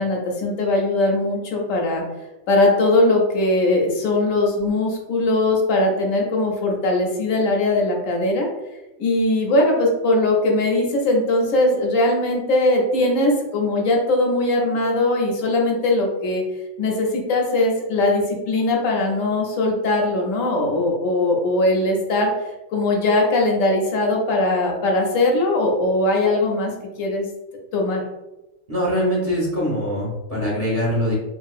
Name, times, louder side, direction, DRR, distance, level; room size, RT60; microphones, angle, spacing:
voice 1, 0.0-2.0 2.5-8.5 9.0-16.4 16.8-22.3 22.7-26.7 27.0-27.3 27.7-28.0, left 2 dB, 75° left, 0 dB, 1.0 m, -20 dB
voice 2, 28.7-31.1, equal, 30° right, -5 dB, 0.8 m, -23 dB
3.0 x 2.7 x 2.4 m, 1.0 s
omnidirectional pair, 1.4 m